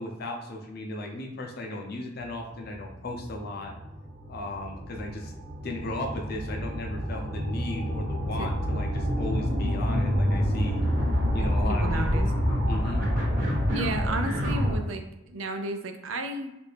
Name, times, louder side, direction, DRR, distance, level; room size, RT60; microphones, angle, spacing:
voice 1, 0.0-3.8 4.3-5.3 5.6-10.8 11.3-12.3 12.6-13.0, left 1 dB, 50° left, 2 dB, 0.5 m, -35 dB
sound 1, 2.3-14.8, equal, 45° right, 1.0 m, -28 dB
voice 2, 11.4-12.3 13.7-16.5, right 2 dB, 75° right, 6 dB, 0.4 m, -33 dB
3.2 x 2.5 x 3.3 m, 0.94 s
head